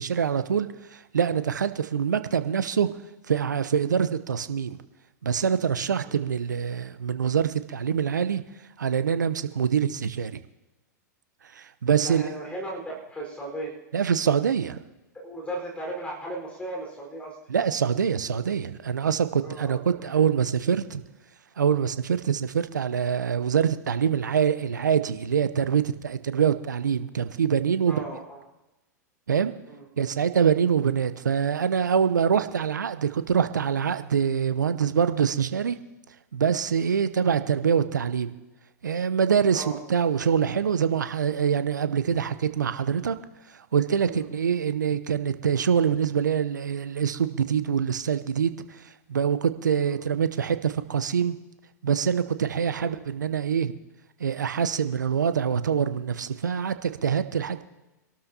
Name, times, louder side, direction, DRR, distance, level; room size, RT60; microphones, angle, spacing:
voice 1, 0.0-2.9 3.3-4.8 5.2-8.4 8.8-10.4 11.5-12.2 13.9-14.8 17.5-21.0 21.6-28.0 29.3-29.5 30.0-35.8 36.3-38.3 38.8-43.1 43.5-51.4 51.8-53.7 54.2-57.6, right 7 dB, 80° right, 12 dB, 0.9 m, -25 dB
voice 2, 12.0-13.7 15.1-17.4 19.4-20.1 27.9-28.2 29.7-29.8 39.5-39.8 44.0-44.3 49.9-50.0 52.8-52.9 57.5-57.6, right 1 dB, 10° left, 0 dB, 4.7 m, -36 dB
26.0 x 12.5 x 2.9 m, 1.0 s
figure-of-eight pair, 100°, 10 cm